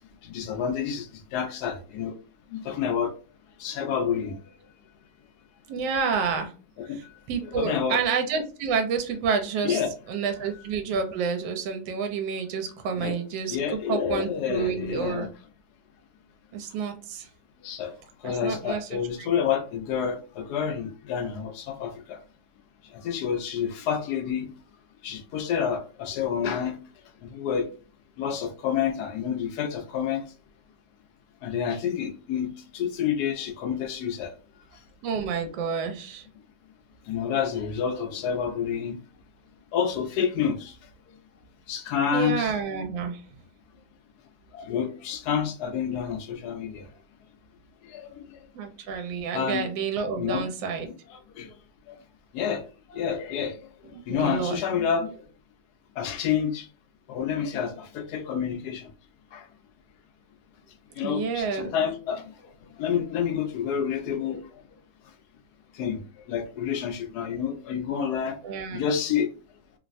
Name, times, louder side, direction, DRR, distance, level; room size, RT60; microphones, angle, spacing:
voice 1, 0.2-2.2 2.5-3.1 3.6-4.4 6.8-7.0 7.4-8.0 9.6-9.9 12.9-13.2 13.5-15.3 17.6-17.9 18.2-22.2 23.0-24.5 25.0-26.8 27.2-27.7 28.2-30.2 31.4-34.3 37.1-39.0 39.7-40.8 41.7-42.5 44.5-46.9 47.9-48.1 49.3-49.7 50.1-50.4 50.9-51.5 51.9-52.0 52.3-52.6 52.9-53.7 54.1-55.1 56.0-56.7 57.1-58.9 59.3-59.5 61.0-62.3 62.8-64.4 65.7-66.0 66.3-68.4 68.7-69.3, left 7 dB, 70° left, 1.0 m, -28 dB
voice 2, 5.7-6.5 7.3-9.8 10.1-13.6 13.9-15.3 16.5-17.3 18.2-19.3 35.0-36.3 42.1-43.2 48.5-50.9 54.1-54.6 61.0-61.7 68.4-68.8, right 6 dB, 80° right, 1.3 m, -29 dB
3.2 x 2.1 x 2.4 m
omnidirectional pair, 2.0 m